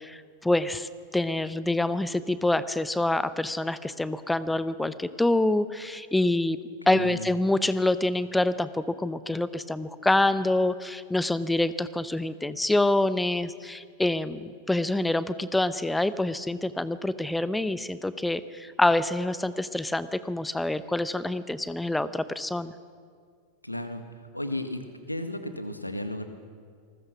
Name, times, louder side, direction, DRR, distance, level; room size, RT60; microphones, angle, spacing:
voice 1, 0.0-6.6 6.9-22.7, left 2 dB, 5° left, 15 dB, 0.8 m, -26 dB
voice 2, 6.9-7.3 23.6-24.0 24.3-24.8 25.1-26.3, left 1 dB, 85° left, 8 dB, 1.8 m, -33 dB
28.0 x 20.0 x 6.1 m, 2.1 s
figure-of-eight pair, 90°, 0 cm